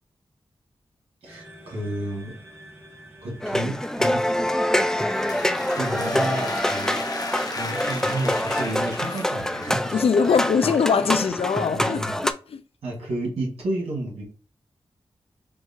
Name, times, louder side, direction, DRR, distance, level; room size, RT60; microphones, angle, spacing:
voice 1, 1.2-2.4 3.2-4.7 5.7-7.0 7.5-10.0 11.7-12.2 12.8-14.2, right 1 dB, 90° right, 1.9 m, -31 dB
sound 1, 1.3-6.6, right 1 dB, 25° right, 1.2 m, -44 dB
sound 2, 3.4-12.3, left 1 dB, 5° left, 0.4 m, -25 dB
sound 3, 4.8-9.9, left 2 dB, 40° left, 0.8 m, -35 dB
voice 2, 9.9-12.6, left 6 dB, 75° left, 0.4 m, -22 dB
4.6 x 2.4 x 2.7 m
cardioid pair, 45°, 10 cm